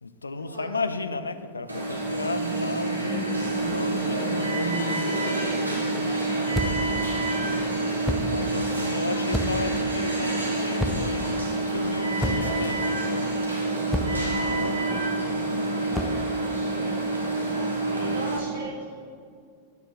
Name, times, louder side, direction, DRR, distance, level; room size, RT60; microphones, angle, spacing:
voice 1, 0.0-7.6 8.3-13.4 14.1-14.9 15.2-16.3, left 3 dB, 75° left, 11 dB, 0.4 m, -35 dB
Alarm, 1.7-18.4, right 2 dB, 85° right, 1.5 m, -27 dB
sound 1, 6.5-6.9 8.0-8.4 9.3-9.7 10.8-11.2 12.2-12.6 13.9-14.3 15.9-16.2, equal, ahead, 0.5 m, -28 dB
voice 2, 8.7-9.3 17.9-19.0, right 1 dB, 65° right, -3 dB, 1.9 m, -38 dB
8.5 x 3.9 x 6.1 m, 2.2 s
figure-of-eight pair, 90°, 0 cm